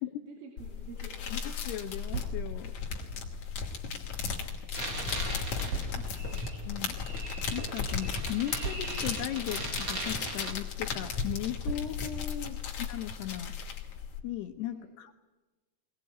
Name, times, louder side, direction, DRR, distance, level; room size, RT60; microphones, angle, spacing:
voice 1, 0.2-1.4 5.6-6.3 12.4-12.6 14.7-14.9, right 5 dB, 75° right, 2 dB, 5.3 m, -50 dB
sound 1, 0.6-14.2, left 5 dB, 40° left, 3.2 m, -36 dB
voice 2, 1.3-2.7 6.6-7.0 7.5-12.6 12.9-13.5 14.2-15.1, left 13 dB, 75° left, 7 dB, 2.6 m, -37 dB
sound 2, 2.1-2.8 3.6-4.6 5.7-6.3 7.2-7.3 7.6-7.7 8.6-9.3 10.1-10.4 11.6-12.3, right 4 dB, 45° right, 4.9 m, -39 dB
sound 3, 4.7-10.5, right 2 dB, 25° right, 2.1 m, -39 dB
20.5 x 20.0 x 9.3 m, 1.1 s
omnidirectional pair, 5.7 m